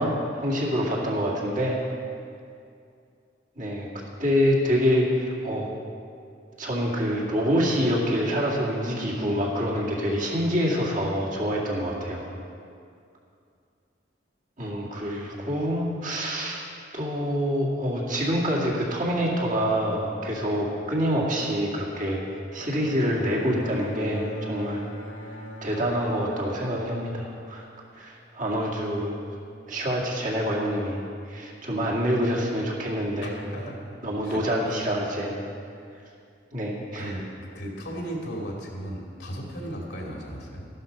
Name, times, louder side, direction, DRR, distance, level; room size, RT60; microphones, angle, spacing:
voice 1, 0.0-1.8 3.6-3.9 4.2-5.7 6.6-12.3 14.6-16.6 16.9-22.2 22.5-24.9 25.3-27.7 27.9-29.2 29.7-33.3 34.0-35.4 36.5-37.1, equal, 45° right, -4 dB, 2.2 m, -26 dB
Bowed string instrument, 22.6-28.0, left 1 dB, 85° left, 2.1 m, -41 dB
voice 2, 33.2-33.8 34.2-34.4 36.9-37.3 37.5-40.7, equal, 65° left, -1 dB, 2.6 m, -35 dB
13.0 x 12.0 x 5.3 m, 2.4 s
head